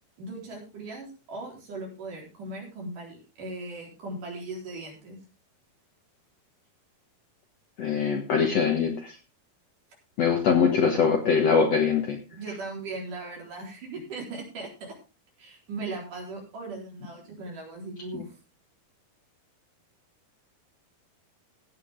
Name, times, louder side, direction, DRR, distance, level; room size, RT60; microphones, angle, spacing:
voice 1, 0.2-5.2 12.3-14.9 15.4-18.3, right 2 dB, 55° right, -1 dB, 5.5 m, -38 dB
voice 2, 7.8-9.2 10.2-12.2, left 6 dB, 60° left, 3 dB, 1.8 m, -23 dB
16.5 x 8.6 x 3.6 m, 0.31 s
omnidirectional pair, 4.4 m